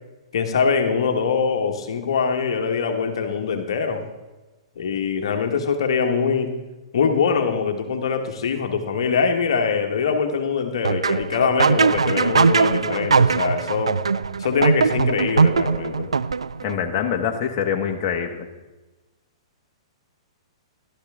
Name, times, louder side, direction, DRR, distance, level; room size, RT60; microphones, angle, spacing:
voice 1, 0.3-4.0 4.8-6.5 6.9-14.0 14.4-16.1, left 5 dB, 65° left, 5 dB, 1.4 m, -23 dB
sound 1, 10.8-16.8, right 5 dB, 85° right, 0.4 m, -20 dB
voice 2, 16.6-18.5, left 7 dB, 40° left, 3 dB, 1.3 m, -24 dB
15.0 x 12.0 x 3.6 m, 1.1 s
hypercardioid pair, 115°, 3 cm